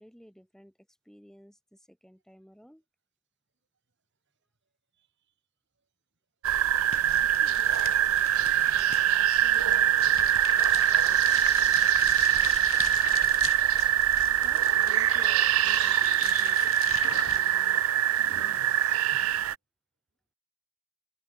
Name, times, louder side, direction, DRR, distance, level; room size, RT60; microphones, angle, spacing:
voice 1, 0.0-2.8 10.0-11.0 14.4-17.8 18.3-19.0, equal, ahead, 3.8 m, -55 dB
voice 2, 4.9-5.3 5.8-5.9 6.9-13.5, right 4 dB, 55° right, 2.1 m, -55 dB
sound 1, 6.4-19.6, right 11 dB, 70° right, 0.4 m, -24 dB
sound 2, 6.8-17.4, left 9 dB, 65° left, 2.6 m, -40 dB
sound 3, 10.2-17.1, left 4 dB, 90° left, 2.6 m, -60 dB
head